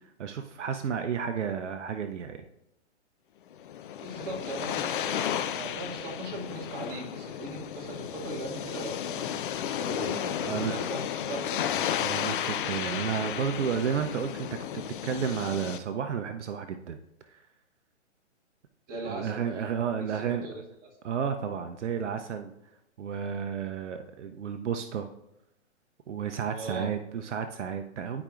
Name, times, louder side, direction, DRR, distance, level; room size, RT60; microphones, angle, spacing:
voice 1, 0.2-2.4 10.1-10.8 12.0-14.5 15.0-17.0 17.3-17.4 19.0-20.5 21.0-22.5 23.0-25.1 26.1-28.2, right 7 dB, 75° right, 7 dB, 0.7 m, -32 dB
sound 1, 3.5-15.8, left 10 dB, 45° left, 0.5 m, -33 dB
voice 2, 4.0-9.4 9.7-11.9 18.9-19.4 20.0-20.6 26.5-26.9, right 2 dB, 25° right, -3 dB, 1.9 m, -39 dB
12.5 x 4.9 x 2.5 m, 0.86 s
hypercardioid pair, 135°, 36 cm